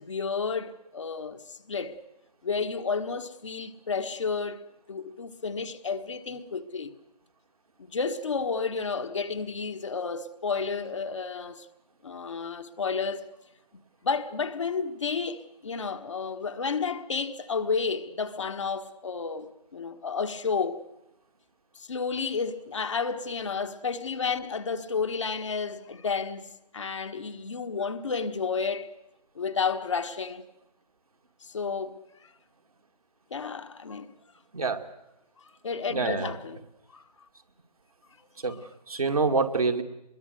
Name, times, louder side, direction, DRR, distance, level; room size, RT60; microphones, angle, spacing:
voice 1, 0.0-2.0 2.4-4.6 4.9-6.9 7.8-11.7 12.0-13.2 14.0-20.8 21.7-26.5 26.7-28.9 29.3-30.4 31.4-32.3 33.3-34.1 35.6-36.6 36.9-37.0 38.2-38.3, left 5 dB, 50° left, 1.6 m, -31 dB
voice 2, 34.5-34.8 35.9-36.4 38.4-39.8, right 4 dB, 60° right, 2.5 m, -27 dB
25.0 x 22.0 x 8.1 m
figure-of-eight pair, 145°, 20 cm